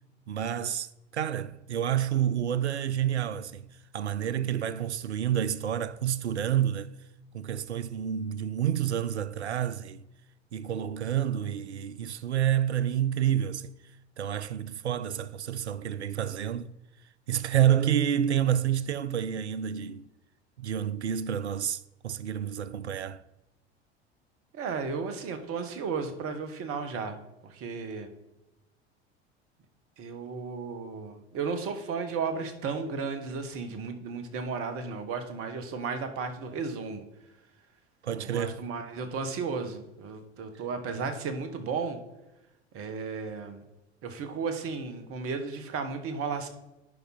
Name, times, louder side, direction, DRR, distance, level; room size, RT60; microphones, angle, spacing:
voice 1, 0.3-3.7 3.9-6.9 7.3-10.0 10.5-13.7 14.2-16.7 17.3-20.1 20.6-23.2 38.0-38.7, right 10 dB, 80° right, 0.5 m, -29 dB
voice 2, 24.5-28.1 30.0-37.0 38.2-42.0 42.7-43.6 44.0-46.5, right 5 dB, 40° right, 1.4 m, -34 dB
10.5 x 5.5 x 4.0 m
figure-of-eight pair, 70°, 33 cm